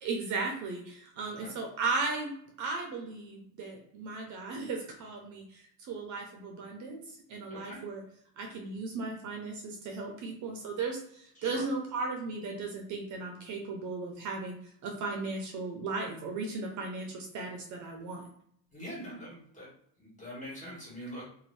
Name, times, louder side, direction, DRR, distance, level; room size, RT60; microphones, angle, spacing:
voice 1, 0.0-8.0 8.4-18.2, right 3 dB, 45° right, 1 dB, 0.7 m, -36 dB
voice 2, 7.5-7.8 11.4-11.7 18.7-19.7 20.0-21.3, equal, 20° left, -5 dB, 1.4 m, -43 dB
2.6 x 2.6 x 3.2 m, 0.66 s
cardioid pair, 150°, 41 cm